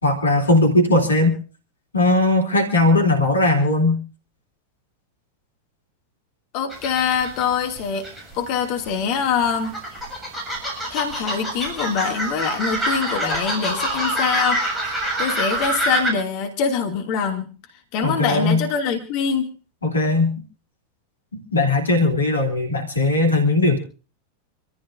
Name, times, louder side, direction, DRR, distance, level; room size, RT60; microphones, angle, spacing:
voice 1, 0.0-1.4 1.9-4.0 18.0-18.6 19.8-20.4 21.3-23.8, left 2 dB, 75° left, 3 dB, 3.2 m, -18 dB
voice 2, 6.5-8.1 8.3-10.0 10.9-17.5 17.9-19.5, left 6 dB, 45° left, 4 dB, 2.6 m, -24 dB
sound 1, 6.7-8.3 8.6-16.1, right 1 dB, 10° right, 7.3 m, -26 dB
26.5 x 14.5 x 2.7 m, 0.34 s
figure-of-eight pair, 90°, 0 cm